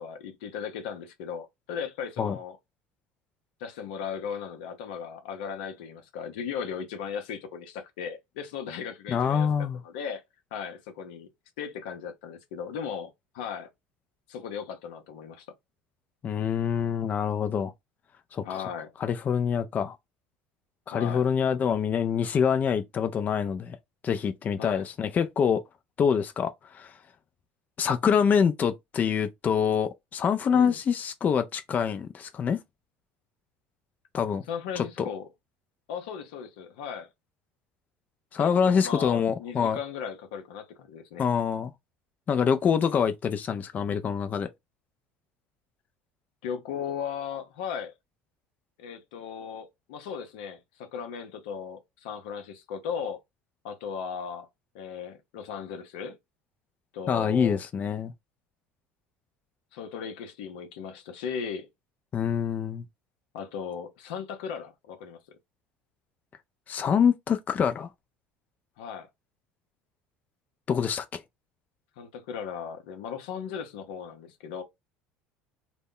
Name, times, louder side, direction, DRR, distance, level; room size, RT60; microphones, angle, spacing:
voice 1, 0.0-2.6 3.6-10.2 10.5-11.3 11.6-13.7 14.3-15.5 18.4-18.9 20.9-21.3 24.6-24.8 30.5-30.8 34.5-35.3 35.9-37.1 38.4-41.2 46.4-47.9 48.8-53.2 53.6-54.5 54.7-56.2 56.9-57.6 59.7-61.7 63.3-65.2 68.8-69.1 72.0-74.6, left 7 dB, 80° left, 0.6 m, -37 dB
voice 2, 9.1-9.8 16.2-17.7 18.3-18.6 19.0-20.0 20.9-23.8 24.0-25.6 26.0-27.0 27.8-32.6 34.1-34.4 34.8-35.1 38.3-39.8 41.2-41.7 42.3-44.5 57.1-58.1 62.1-62.8 66.7-67.9 70.7-71.2, left 7 dB, 35° left, 0.3 m, -25 dB
2.0 x 2.0 x 3.6 m
supercardioid pair, 90°, 5 cm